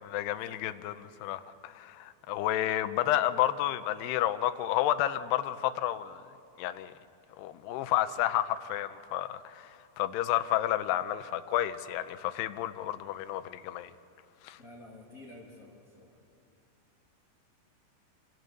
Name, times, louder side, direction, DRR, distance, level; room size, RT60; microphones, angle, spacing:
voice 1, 0.0-6.2 6.6-6.9 7.4-13.9 14.4-14.6, left 13 dB, 80° left, 2.8 m, -31 dB
voice 2, 14.6-16.2, left 2 dB, 25° left, 2.6 m, -51 dB
28.0 x 27.5 x 6.7 m
omnidirectional pair, 5.0 m